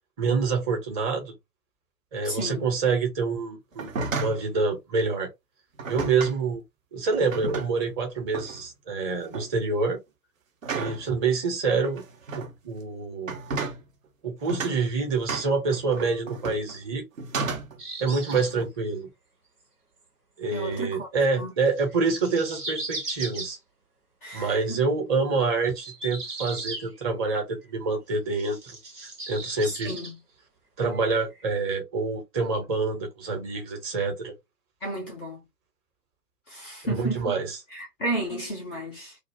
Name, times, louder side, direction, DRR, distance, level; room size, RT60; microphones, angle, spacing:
voice 1, 0.2-1.3 2.1-5.3 5.9-6.6 6.9-10.0 10.7-12.0 12.3-13.4 14.2-17.0 18.0-19.1 20.4-23.6 24.3-28.6 29.3-29.9 30.8-34.3 36.9-37.6, right 4 dB, 25° right, 1.0 m, -27 dB
voice 2, 2.2-2.7 20.5-21.1 21.4-21.5 24.2-24.8 29.7-30.2 34.8-35.4 36.5-37.4 37.7-39.2, right 1 dB, ahead, 0.4 m, -33 dB
sound 1, 3.7-4.5 5.8-6.4 7.1-7.9 8.3-8.6 9.1-9.5 10.6-11.1 11.8-12.5 13.2-13.8 14.5-14.8 15.3-16.8 17.2-17.8 18.3-18.7, right 4 dB, 60° right, 0.9 m, -33 dB
sound 2, 17.8-18.5 21.6-23.5 25.6-27.3 28.3-30.1 30.9-31.1 31.3-31.4, right 2 dB, 85° right, 1.2 m, -37 dB
2.5 x 2.3 x 3.3 m
figure-of-eight pair, 115°, 46 cm